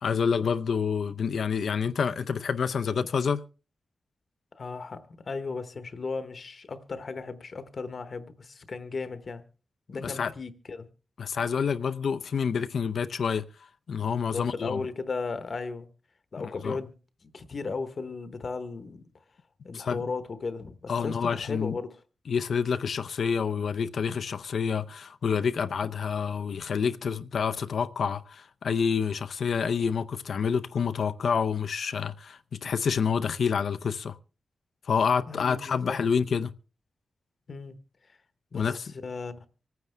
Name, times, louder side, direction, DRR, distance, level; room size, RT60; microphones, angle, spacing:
voice 1, 0.0-3.4 10.0-10.3 11.2-13.4 13.9-14.8 16.4-16.8 19.7-20.0 20.9-21.8 22.3-34.2 34.8-36.5 38.5-38.9, left 6 dB, 70° left, 0.6 m, -28 dB
voice 2, 4.6-9.4 9.9-10.9 14.3-15.9 16.3-16.9 17.2-19.0 19.6-22.0 35.3-36.0 37.5-37.8 38.5-38.7 39.0-39.4, left 4 dB, 45° left, 1.0 m, -36 dB
25.5 x 9.3 x 3.4 m
wide cardioid pair, 175°, 0 cm